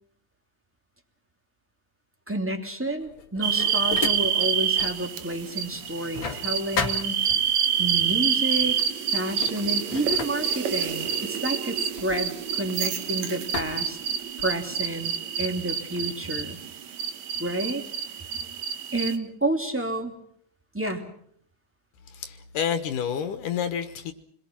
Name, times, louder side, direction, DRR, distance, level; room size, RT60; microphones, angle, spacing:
voice 1, 2.3-7.2 7.8-8.8 9.1-14.0 14.4-15.1 15.4-16.6 17.4-17.8 18.9-20.1 20.7-21.0, right 1 dB, 5° right, 4 dB, 2.3 m, -30 dB
sound 1, 3.0-5.0 5.4-7.7 8.6-8.8 9.2-13.0 13.5-14.7, left 5 dB, 40° left, 2.4 m, -35 dB
sound 2, 3.4-19.2, right 8 dB, 65° right, 2.5 m, -28 dB
voice 2, 22.1-24.1, left 8 dB, 80° left, 9 dB, 2.8 m, -29 dB
28.0 x 22.0 x 6.0 m, 0.65 s
omnidirectional pair, 3.7 m